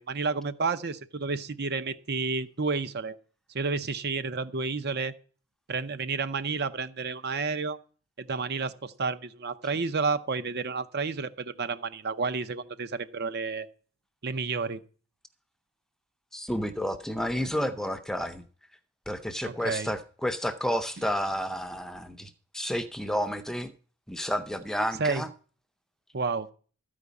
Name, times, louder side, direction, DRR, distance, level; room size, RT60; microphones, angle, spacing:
voice 1, 0.0-3.1 3.5-5.1 5.7-7.8 8.2-13.7 14.2-14.8 19.4-19.9 25.0-25.2 26.1-26.5, right 4 dB, 50° right, 0.7 m, -30 dB
voice 2, 16.3-18.4 19.1-23.7 24.1-25.3, equal, ahead, 0.6 m, -31 dB
13.5 x 5.1 x 8.3 m
head